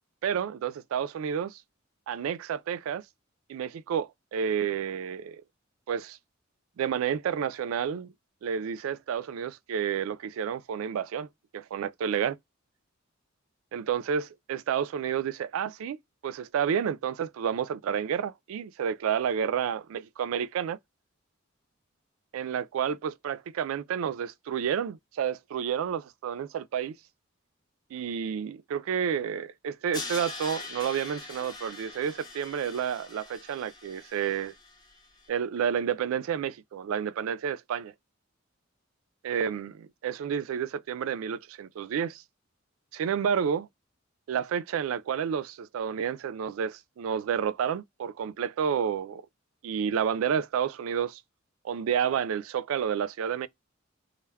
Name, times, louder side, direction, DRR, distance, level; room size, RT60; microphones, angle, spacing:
voice 1, 0.2-1.6 2.1-3.0 3.5-5.4 5.9-6.2 6.8-8.1 8.4-11.3 11.5-12.4 13.7-16.0 16.2-20.8 22.3-26.9 27.9-34.5 35.3-37.9 39.2-42.2 42.9-43.7 44.3-49.2 49.6-51.2 51.6-53.5, right 8 dB, 80° right, 0.3 m, -30 dB
Crash cymbal, 29.9-35.0, left 3 dB, 20° left, 0.6 m, -42 dB
2.2 x 2.1 x 3.2 m
head